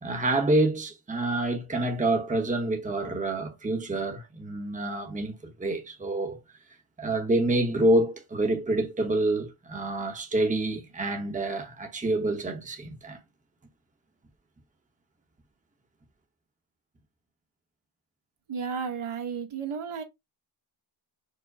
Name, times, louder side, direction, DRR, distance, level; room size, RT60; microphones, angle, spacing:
voice 1, 0.0-6.4 7.0-13.2, right 1 dB, 15° right, 0.8 m, -27 dB
voice 2, 18.5-20.0, right 6 dB, 75° right, 1.3 m, -33 dB
4.7 x 2.0 x 4.7 m
wide cardioid pair, 145°, 50 cm